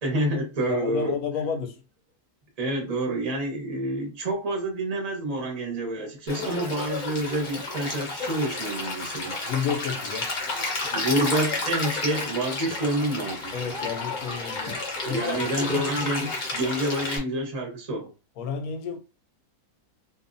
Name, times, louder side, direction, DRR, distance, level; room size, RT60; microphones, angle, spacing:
voice 1, 0.0-1.2 2.6-9.4 10.9-13.5 15.0-18.1, right 1 dB, 30° right, 0.7 m, -28 dB
voice 2, 0.7-1.8 9.5-10.3 13.5-15.7 18.4-19.0, left 7 dB, 70° left, 1.0 m, -31 dB
Stream, 6.3-17.2, left 3 dB, 45° left, 0.6 m, -31 dB
2.7 x 2.4 x 2.5 m
omnidirectional pair, 1.8 m